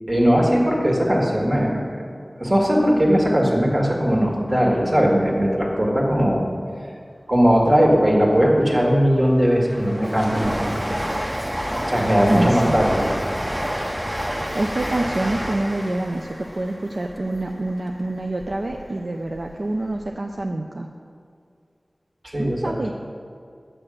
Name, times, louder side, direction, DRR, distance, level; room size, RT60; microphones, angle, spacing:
voice 1, 0.1-2.0 2.4-6.4 7.3-11.0 11.9-13.1 22.3-22.6, equal, 45° right, -2 dB, 2.0 m, -19 dB
Train, 8.6-18.8 19.2-20.1 20.4-20.5, equal, 15° right, 0.7 m, -29 dB
voice 2, 12.3-12.8 14.2-20.9 22.4-22.9, right 2 dB, 65° right, 2 dB, 0.5 m, -26 dB
7.4 x 6.8 x 6.4 m, 2.3 s
wide cardioid pair, 45°, 0 cm